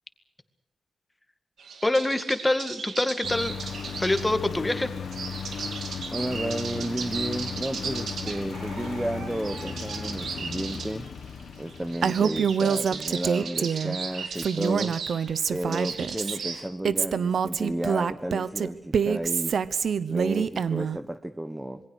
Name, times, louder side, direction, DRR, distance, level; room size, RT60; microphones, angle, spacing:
sound 1, 1.6-16.6, right 5 dB, 85° right, 3.0 m, -37 dB
voice 1, 1.8-3.5 4.0-4.9, left 1 dB, 10° left, 9 dB, 2.0 m, -25 dB
Engine, 3.2-12.7, left 6 dB, 80° left, 1.8 m, -36 dB
voice 2, 6.1-11.1 11.6-15.0 15.5-19.5 20.1-21.8, right 1 dB, 10° right, 9 dB, 1.0 m, -32 dB
Female speech woman speaking, 12.0-14.0 14.4-16.4 16.8-21.0, right 7 dB, 70° right, 1.0 m, -26 dB
26.5 x 22.5 x 6.4 m, 0.82 s
wide cardioid pair, 130°, 0 cm